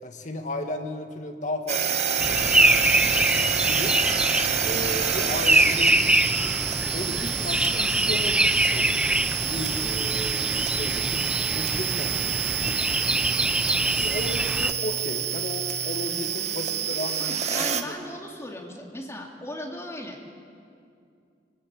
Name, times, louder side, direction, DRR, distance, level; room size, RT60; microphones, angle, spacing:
voice 1, 0.0-3.9 4.6-6.0 6.3-6.7 6.9-8.4 8.7-9.1 9.4-12.2 12.6-12.9 13.9-17.9, left 1 dB, 45° left, 5 dB, 2.0 m, -35 dB
sound 1, 1.7-17.8, right 8 dB, 40° right, 1.2 m, -28 dB
sound 2, 2.2-14.7, right 1 dB, 5° right, 0.5 m, -24 dB
voice 2, 17.2-20.2, left 1 dB, 15° left, 0 dB, 3.1 m, -37 dB
24.0 x 19.5 x 8.5 m, 2.4 s
head